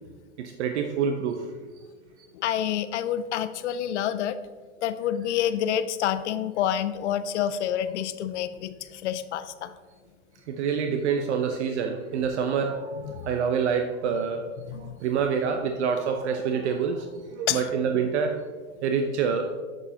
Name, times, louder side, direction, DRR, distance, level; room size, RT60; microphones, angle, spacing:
voice 1, 0.4-1.5 2.2-2.3 10.5-14.5 14.7-18.4 18.8-19.5, right 6 dB, 60° right, 5 dB, 0.7 m, -27 dB
voice 2, 2.3-4.4 4.8-9.7 13.0-13.3 14.7-14.9 17.5-17.6, left 10 dB, 60° left, 13 dB, 0.6 m, -28 dB
8.1 x 7.0 x 2.8 m, 1.4 s
hypercardioid pair, 140°, 39 cm